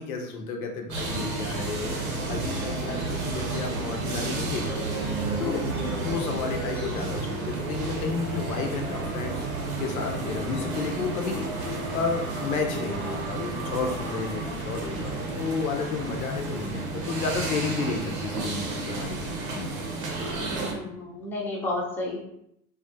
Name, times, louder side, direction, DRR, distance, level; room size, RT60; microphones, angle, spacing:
voice 1, 0.0-1.9 2.3-4.9 5.4-5.6 6.0-9.4 9.8-19.7, left 5 dB, 75° left, 3 dB, 0.6 m, -32 dB
sound 1, 0.9-20.7, right 3 dB, 80° right, 0.8 m, -31 dB
voice 2, 2.7-3.0 5.4-6.1 14.5-14.6 14.8-15.0 20.4-22.2, left 2 dB, 5° left, -4 dB, 0.4 m, -34 dB
2.4 x 2.0 x 2.6 m, 0.76 s
hypercardioid pair, 85°, 43 cm